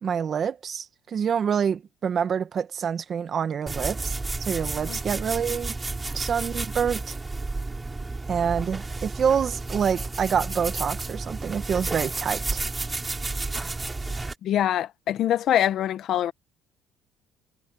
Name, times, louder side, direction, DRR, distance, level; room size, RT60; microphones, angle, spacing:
voice 1, 0.0-5.7 6.1-7.2 8.3-12.6, right 7 dB, 45° right, 2.0 m, -27 dB
sound 1, 3.7-14.3, right 3 dB, 15° right, 3.5 m, -31 dB
voice 2, 14.4-16.3, left 11 dB, 60° left, 1.5 m, -24 dB
cardioid pair, 110°, 0 cm